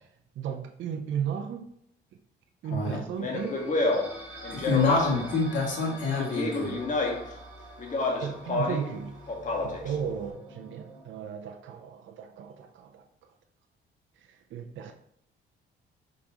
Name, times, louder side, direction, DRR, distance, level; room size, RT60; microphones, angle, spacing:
voice 1, 0.4-1.7 2.6-3.6 8.2-9.1 9.6-13.0 14.3-14.9, right 8 dB, 75° right, 5 dB, 0.7 m, -35 dB
voice 2, 2.6-3.0 4.5-6.8, left 4 dB, 70° left, -2 dB, 2.5 m, -27 dB
Speech, 3.2-5.3 6.2-7.3 7.8-8.9 9.3-9.9, left 2 dB, 40° left, 1.7 m, -29 dB
sound 1, 3.4-11.0, right 1 dB, 10° right, 2.4 m, -46 dB
6.1 x 5.1 x 3.0 m, 0.70 s
cardioid pair, 90°, 20 cm